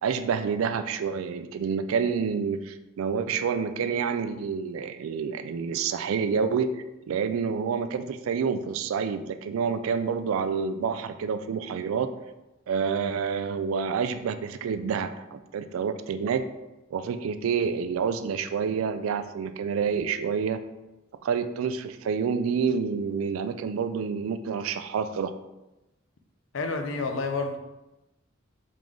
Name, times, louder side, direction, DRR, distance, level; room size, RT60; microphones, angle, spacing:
voice 1, 0.0-12.1 12.7-16.5 16.9-20.6 21.2-25.3, right 6 dB, 85° right, 10 dB, 0.3 m, -28 dB
voice 2, 26.5-27.6, left 3 dB, 70° left, 5 dB, 0.5 m, -29 dB
3.7 x 3.6 x 3.1 m, 0.99 s
head